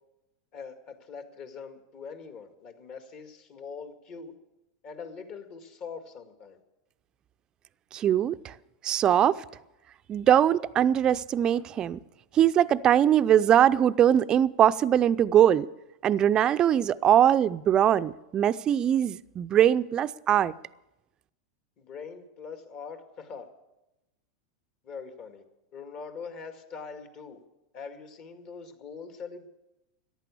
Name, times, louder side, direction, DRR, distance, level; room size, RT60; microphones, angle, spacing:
voice 1, 0.5-4.3 4.8-6.6 21.8-23.5 24.8-25.4 25.7-27.4 27.7-29.5, left 5 dB, 45° left, 7 dB, 2.1 m, -42 dB
voice 2, 7.9-8.5 8.8-9.4 10.1-12.0 12.3-15.7 16.0-20.5, right 10 dB, 30° right, 14 dB, 0.5 m, -22 dB
14.5 x 10.5 x 8.4 m, 0.96 s
hypercardioid pair, 115°, 2 cm